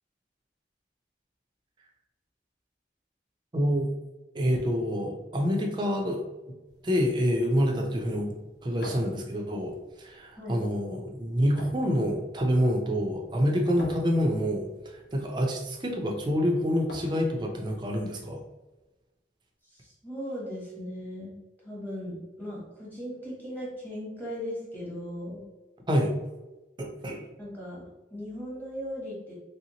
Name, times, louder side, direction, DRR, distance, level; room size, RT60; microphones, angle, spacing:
voice 1, 3.5-3.9 4.3-6.2 6.8-8.3 8.6-18.4 25.9-26.1 26.8-27.2, equal, 25° right, 1 dB, 0.5 m, -27 dB
sound 1, 6.7-18.0, equal, 75° left, 0.7 m, -48 dB
voice 2, 19.6-21.4 21.6-25.4 27.4-27.8 28.1-29.3, equal, 10° left, -6 dB, 1.0 m, -38 dB
3.3 x 2.8 x 2.8 m, 1.1 s
head